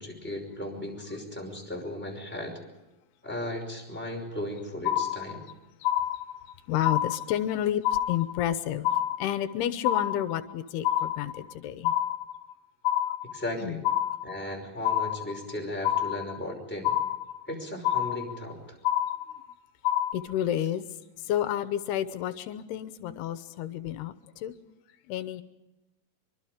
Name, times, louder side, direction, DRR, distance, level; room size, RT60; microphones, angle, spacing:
voice 1, 0.0-2.6 3.2-5.4 13.2-13.8 14.2-16.9 17.5-18.8, left 1 dB, 5° left, 1 dB, 5.0 m, -36 dB
sound 1, 4.8-5.5 5.8-6.5 6.8-7.5 7.8-8.5 8.8-9.5 9.8-10.5 10.8-11.5 11.8-12.5 12.8-13.5 13.8-14.5 14.8-15.5 15.8-16.5 16.8-17.5 17.8-18.5 18.8-19.5 19.8-20.1, left 11 dB, 70° left, 2.8 m, -27 dB
voice 2, 6.7-7.8 8.1-11.9 13.6-13.8 20.1-20.9 21.3-24.5 25.1-25.4, left 11 dB, 90° left, 11 dB, 3.0 m, -30 dB
24.5 x 24.0 x 5.1 m, 1.0 s
omnidirectional pair, 4.6 m